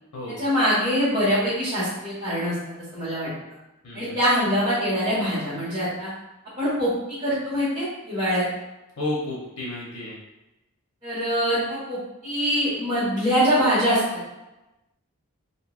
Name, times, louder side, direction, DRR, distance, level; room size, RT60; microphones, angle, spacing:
voice 1, 0.3-2.5 2.9-3.3 3.9-6.1 6.6-8.4 11.0-14.3, equal, 20° right, -15 dB, 1.3 m, -24 dB
voice 2, 3.8-4.2 9.0-10.1, left 2 dB, 90° left, -5 dB, 0.7 m, -31 dB
3.0 x 2.6 x 2.4 m, 0.99 s
head